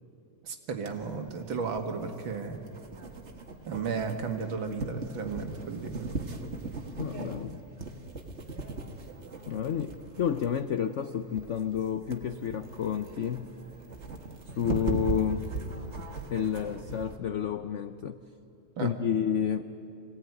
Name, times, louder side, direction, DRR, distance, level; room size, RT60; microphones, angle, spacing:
voice 1, 0.4-2.6 3.7-6.1 18.8-18.9, right 5 dB, 85° right, 5 dB, 2.4 m, -34 dB
sound 1, 0.9-17.2, right 3 dB, 40° right, 1.7 m, -39 dB
voice 2, 7.0-7.6 9.5-13.5 14.5-15.5 16.3-18.2 18.8-19.6, left 8 dB, 75° left, 10 dB, 0.6 m, -30 dB
25.5 x 18.0 x 9.4 m, 2.8 s
omnidirectional pair, 2.1 m